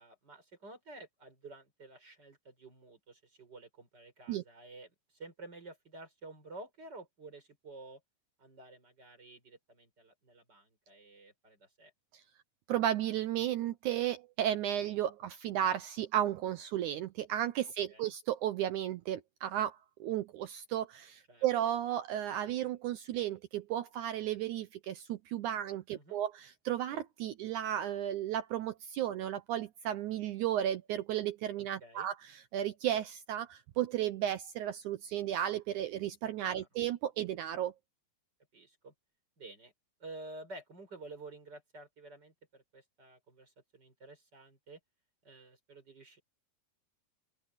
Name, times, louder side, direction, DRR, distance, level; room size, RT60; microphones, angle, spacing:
voice 1, 0.0-8.0 8.4-11.9 17.9-18.1 21.3-21.5 25.9-26.2 31.8-32.1 36.5-36.7 38.5-38.9 39.4-39.7 40.0-44.8 45.2-46.2, right 2 dB, 25° right, 5.9 m, -51 dB
voice 2, 12.7-32.1 32.5-37.7, right 11 dB, 80° right, 1.8 m, -34 dB
open air
omnidirectional pair, 4.3 m